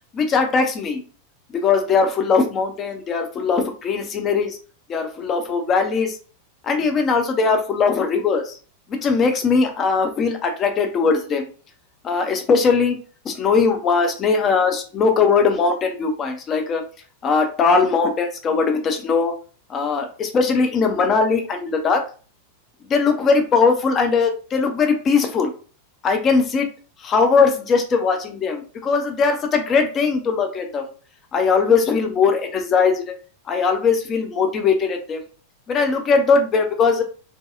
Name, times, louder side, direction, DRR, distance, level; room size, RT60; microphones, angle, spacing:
voice 1, 0.1-1.0 1.5-4.6 4.9-6.2 6.6-8.6 8.9-11.5 12.0-13.0 13.3-16.8 17.2-19.3 19.7-22.0 22.9-25.5 26.0-26.7 27.0-30.9 31.3-33.1 33.5-35.2 35.7-37.0, left 5 dB, 25° left, 5 dB, 0.4 m, -20 dB
2.6 x 2.3 x 2.3 m, 0.39 s
figure-of-eight pair, 90°, 0 cm